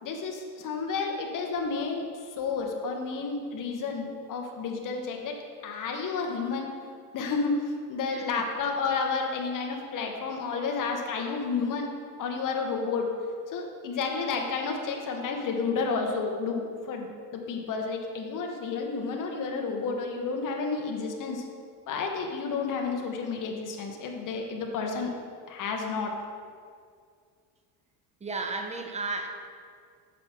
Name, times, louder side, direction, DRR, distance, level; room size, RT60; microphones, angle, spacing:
voice 1, 0.0-2.0 2.4-5.4 5.6-6.7 7.1-7.5 7.9-11.9 12.2-13.1 13.5-21.5 21.9-25.1 25.5-26.2, left 4 dB, 40° left, 2 dB, 1.0 m, -31 dB
voice 2, 8.1-8.5 28.2-29.3, right 3 dB, 15° right, 4 dB, 0.7 m, -33 dB
7.7 x 5.9 x 3.6 m, 2.1 s
supercardioid pair, 110°, 47 cm